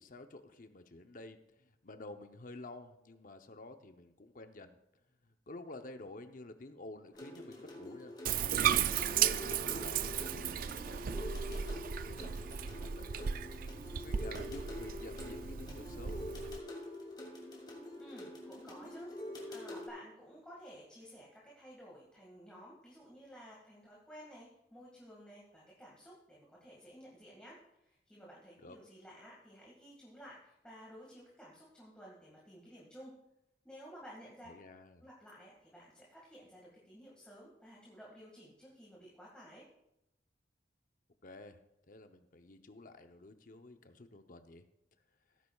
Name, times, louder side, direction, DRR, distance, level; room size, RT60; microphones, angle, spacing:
voice 1, 0.0-4.8 5.2-8.1 8.7-11.4 11.7-13.4 14.0-16.3 28.6-28.8 34.5-35.1 41.2-41.6 41.9-44.6, left 2 dB, 50° left, 7 dB, 0.8 m, -51 dB
sound 1, 7.1-19.9, left 1 dB, 25° left, 2.8 m, -46 dB
Bathtub (filling or washing), 8.3-16.6, right 9 dB, 50° right, 0.3 m, -35 dB
voice 2, 18.0-33.1 33.6-34.5 35.0-39.7, equal, 5° left, -5 dB, 1.9 m, -54 dB
16.5 x 9.8 x 2.4 m, 0.84 s
head